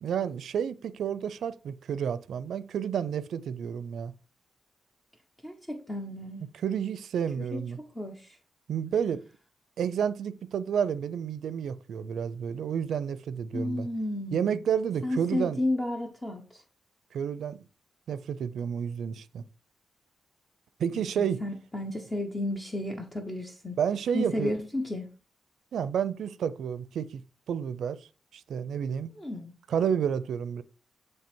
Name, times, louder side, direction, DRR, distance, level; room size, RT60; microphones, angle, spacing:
voice 1, 0.0-4.1 6.5-7.8 8.7-9.2 9.8-13.9 14.3-15.6 17.1-17.7 18.1-19.4 20.8-21.4 23.8-24.6 25.7-27.2 27.5-29.1 29.7-30.6, right 8 dB, 90° right, 0.5 m, -30 dB
voice 2, 5.4-6.4 7.5-8.4 13.5-14.6 15.0-16.6 21.2-23.8 24.1-25.1 29.1-29.5, left 1 dB, 15° left, 0.9 m, -32 dB
8.9 x 3.3 x 4.4 m
wide cardioid pair, 110°, 0 cm